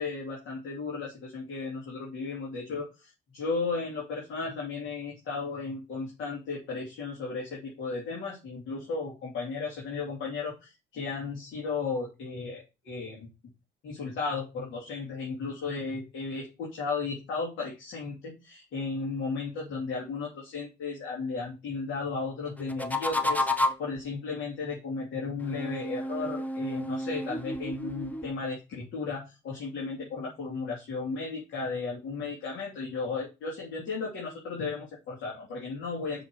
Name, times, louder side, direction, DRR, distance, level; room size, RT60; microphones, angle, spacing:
voice 1, 0.0-13.3 13.8-23.5 23.8-36.2, left 4 dB, 75° left, -4 dB, 3.0 m, -35 dB
sound 1, 22.6-24.0 25.4-28.3, left 1 dB, 10° left, 1.1 m, -31 dB
6.2 x 4.8 x 5.4 m, 0.28 s
cardioid pair, 90°, 20 cm